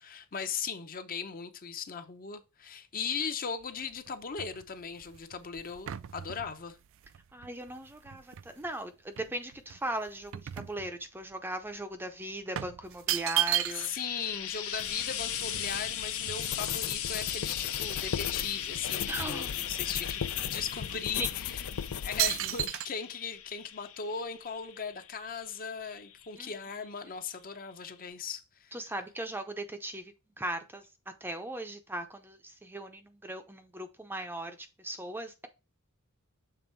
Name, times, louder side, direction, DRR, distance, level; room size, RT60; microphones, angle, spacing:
voice 1, 0.0-6.8 13.7-21.7 22.0-28.8, left 6 dB, 40° left, 0.7 m, -38 dB
sound 1, 3.6-8.7 9.2-11.3 11.6-11.8 12.5-14.1 14.4-14.5 14.7-16.9 17.4-17.5 17.8-18.6 18.8-20.1 20.6-20.8 21.4-21.7 22.2-22.9, right 13 dB, 60° right, 0.4 m, -35 dB
voice 2, 7.3-13.9 19.1-19.5 21.2-21.3 26.4-26.5 28.7-30.8 31.2-35.5, right 1 dB, 10° right, 0.6 m, -38 dB
Frying (food), 13.2-26.6 27.6-27.7, left 10 dB, 65° left, 0.9 m, -39 dB
sound 2, 14.8-22.7, left 9 dB, 80° left, 0.5 m, -37 dB
7.0 x 3.5 x 4.5 m
head